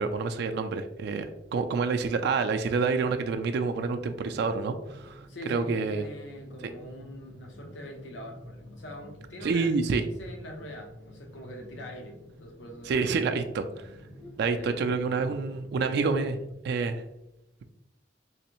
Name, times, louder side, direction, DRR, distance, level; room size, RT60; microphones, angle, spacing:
voice 1, 0.0-6.0 9.4-10.0 12.9-13.9 14.4-16.4 16.6-17.0, right 4 dB, 65° right, 6 dB, 0.3 m, -28 dB
sound 1, 2.9-16.5, left 1 dB, 10° left, 0.4 m, -49 dB
voice 2, 5.3-13.8 14.5-14.8, left 1 dB, 80° left, 2 dB, 0.8 m, -43 dB
3.4 x 3.1 x 2.9 m, 0.87 s
head